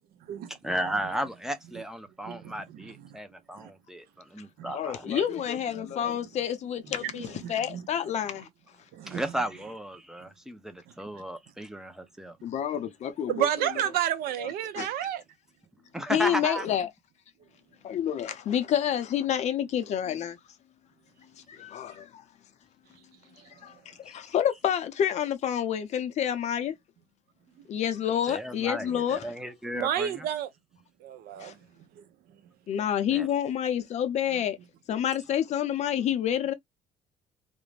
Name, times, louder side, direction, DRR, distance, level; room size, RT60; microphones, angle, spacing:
voice 1, 0.6-5.1 6.9-7.0 9.1-12.4 15.9-16.7 24.1-24.2 28.3-30.3 33.1-33.3, right 1 dB, 5° right, 0.4 m, -34 dB
voice 2, 2.3-2.9 3.6-3.7 4.6-4.7 5.2-5.3 7.0-7.8 8.9-9.2 13.3-15.2 23.4-23.5 29.7-30.5 31.0-31.6 32.0-32.1, right 10 dB, 80° right, 0.6 m, -31 dB
voice 3, 4.7-8.5 12.4-13.7 14.4-14.5 14.8-14.9 16.1-16.9 17.8-20.4 21.5-22.2 23.6-26.7 27.7-29.2 31.4-31.5 32.7-34.6 34.9-36.5, left 9 dB, 50° left, 0.5 m, -28 dB
2.5 x 2.0 x 3.1 m
cardioid pair, 150°, 15 cm